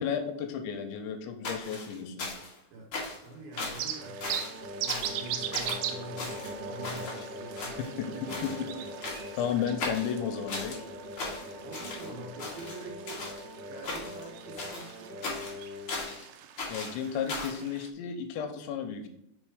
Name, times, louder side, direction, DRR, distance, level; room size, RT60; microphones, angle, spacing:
voice 1, 0.0-2.3 8.0-8.7 9.0-10.8 16.7-19.1, left 7 dB, 85° left, 6 dB, 2.9 m, -33 dB
sound 1, 1.4-2.6 2.9-3.3 3.6-3.9 4.2-4.6 4.9-5.2 5.5-5.8 6.2-7.3 7.6-8.0 8.3-8.6 9.0-9.4 9.8-10.8 11.2-12.1 12.4-13.4 13.8-14.3 14.6-16.2 16.6-17.6, left 3 dB, 55° left, 1.5 m, -37 dB
voice 2, 3.2-8.6 11.6-13.3 13.7-15.2, right 2 dB, 65° right, -2 dB, 2.7 m, -45 dB
sound 2, 3.5-17.9, right 10 dB, 85° right, 2.3 m, -41 dB
sound 3, 4.0-16.2, left 1 dB, 50° right, 2.0 m, -42 dB
6.2 x 4.3 x 4.8 m, 0.77 s
omnidirectional pair, 5.3 m